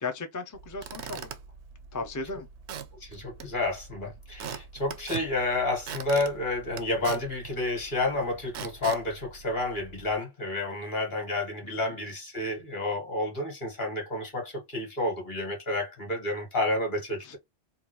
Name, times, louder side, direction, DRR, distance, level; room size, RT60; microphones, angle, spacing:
voice 1, 0.0-1.3 1.9-2.5 11.7-11.9 17.2-17.4, left 3 dB, 30° left, 0.4 m, -36 dB
Squeak / Wood, 0.5-10.1, right 7 dB, 85° right, 0.9 m, -43 dB
voice 2, 3.0-17.4, left 2 dB, 50° left, 1.6 m, -30 dB
3.6 x 2.4 x 2.9 m
omnidirectional pair, 1.1 m